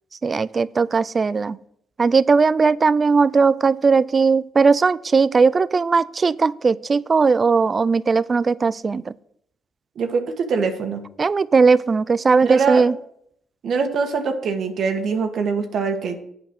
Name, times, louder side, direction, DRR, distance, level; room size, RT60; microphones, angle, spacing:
voice 1, 0.2-1.6 2.0-9.1 11.2-12.9, right 4 dB, 35° right, 19 dB, 0.3 m, -18 dB
voice 2, 9.9-11.0 12.4-12.9 13.6-16.2, right 5 dB, 65° right, 5 dB, 1.4 m, -23 dB
8.7 x 5.1 x 7.6 m, 0.71 s
cardioid pair, 90°, 0 cm